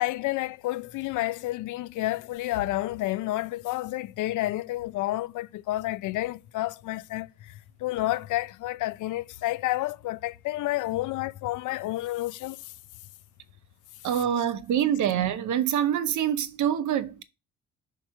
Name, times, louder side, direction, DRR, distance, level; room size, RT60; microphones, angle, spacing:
voice 1, 0.0-12.7, left 16 dB, 80° left, 0.5 m, -30 dB
voice 2, 14.0-17.2, right 10 dB, 75° right, 0.8 m, -25 dB
4.7 x 4.6 x 5.7 m
cardioid pair, 90°, 30 cm